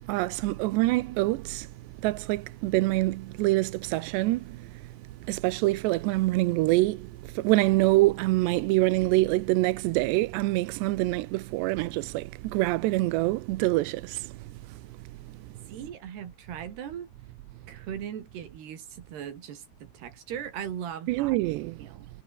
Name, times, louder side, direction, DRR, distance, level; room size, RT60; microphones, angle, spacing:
voice 1, 0.1-1.7 2.0-4.6 5.3-14.3 21.1-21.8, right 19 dB, 80° right, 2.8 m, -25 dB
voice 2, 15.7-17.1 17.7-21.4 21.8-22.1, right 9 dB, 65° right, 4.8 m, -39 dB
omnidirectional pair, 5.2 m